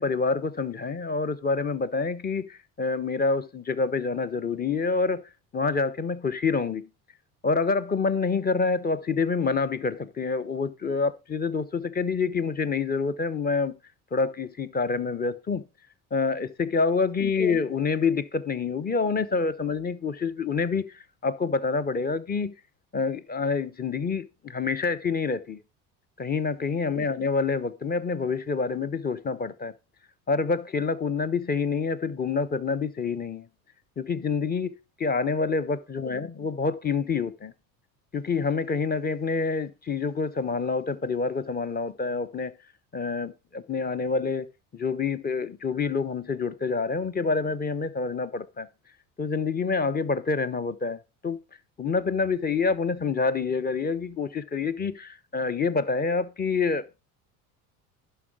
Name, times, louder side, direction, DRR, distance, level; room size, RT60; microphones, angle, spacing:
voice 1, 0.0-6.9 7.4-13.8 14.1-15.6 16.1-22.5 22.9-25.6 26.2-29.7 30.3-33.5 34.0-37.5 38.1-42.5 42.9-44.5 44.7-48.7 49.2-51.4 51.8-57.0, left 4 dB, 20° left, 1.0 m, -27 dB
11.0 x 5.7 x 4.9 m
hypercardioid pair, 65°, 45 cm